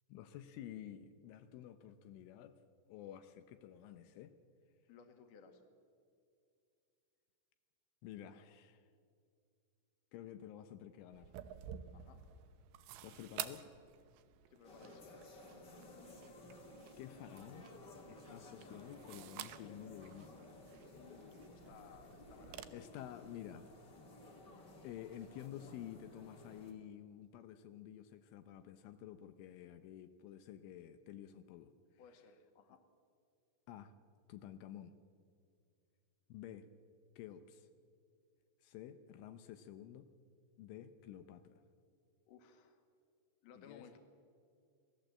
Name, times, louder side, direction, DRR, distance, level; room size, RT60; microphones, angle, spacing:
voice 1, 0.1-4.3 8.0-8.9 10.1-11.3 13.0-13.7 17.0-17.7 18.1-20.5 22.7-23.7 24.8-31.7 33.7-33.9 34.3-35.0 36.3-36.7 37.2-37.7 38.6-40.1 40.6-41.6 43.6-44.0, left 11 dB, 80° left, 9 dB, 3.3 m, -51 dB
voice 2, 4.9-5.6 11.9-12.2 14.5-15.2 20.9-22.7 32.0-32.8 42.3-42.8 43.4-44.0, left 6 dB, 55° left, 6 dB, 2.9 m, -60 dB
sound 1, 11.1-22.6, right 11 dB, 75° right, 3.0 m, -52 dB
sound 2, 14.6-26.7, left 2 dB, 35° left, 1.8 m, -56 dB
27.0 x 18.5 x 7.7 m, 2.4 s
omnidirectional pair, 5.7 m